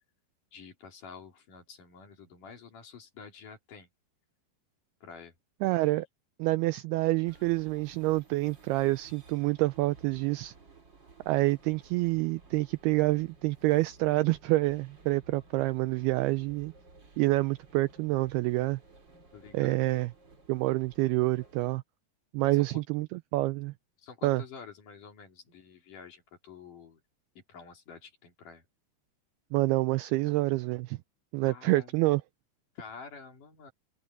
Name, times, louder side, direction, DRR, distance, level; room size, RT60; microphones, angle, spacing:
voice 1, 0.5-3.9 5.0-5.4 19.3-19.9 22.6-22.8 24.0-27.0 27.4-28.6 31.4-31.9 32.8-33.7, left 5 dB, 50° left, 4.1 m, -49 dB
voice 2, 5.6-6.1 6.4-10.5 11.3-16.7 17.2-18.8 19.5-20.1 20.5-21.8 22.3-23.7 24.2-24.4 29.5-31.0 31.3-32.2, right 19 dB, 90° right, 2.2 m, -27 dB
sound 1, 7.3-21.7, right 3 dB, 30° right, 3.4 m, -56 dB
omnidirectional pair, 5.1 m